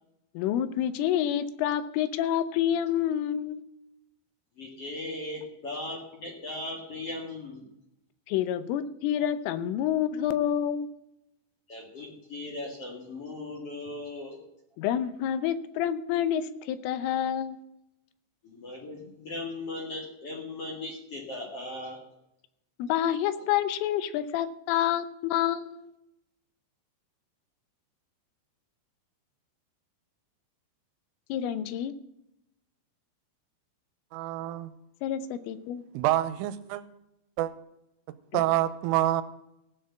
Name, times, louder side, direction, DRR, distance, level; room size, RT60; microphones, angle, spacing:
voice 1, 0.3-3.6 8.3-10.9 14.8-17.6 22.8-25.9 31.3-31.9 35.0-35.8, left 10 dB, 80° left, 13 dB, 3.3 m, -28 dB
voice 2, 4.6-7.7 11.7-14.4 18.4-22.0, left 2 dB, 50° left, 0 dB, 1.8 m, -38 dB
voice 3, 34.1-34.7 35.9-36.8 37.4-37.5 38.3-39.2, right 14 dB, 85° right, 13 dB, 3.3 m, -27 dB
15.5 x 6.7 x 7.9 m, 0.84 s
omnidirectional pair, 5.8 m